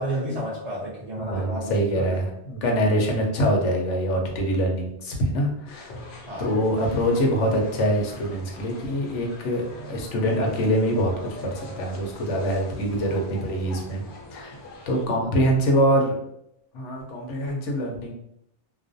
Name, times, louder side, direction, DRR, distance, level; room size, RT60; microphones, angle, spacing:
voice 1, 0.0-2.2 6.3-6.5 15.1-15.3, right 1 dB, 45° right, -6 dB, 0.5 m, -31 dB
voice 2, 1.2-5.9 6.4-11.1 11.4-14.0 14.3-14.6 14.9-16.2 16.7-18.1, equal, 85° left, 1 dB, 0.9 m, -24 dB
sound 1, 5.7-15.1, left 1 dB, 60° left, 0.6 m, -42 dB
2.4 x 2.1 x 2.5 m, 0.78 s
omnidirectional pair, 1.2 m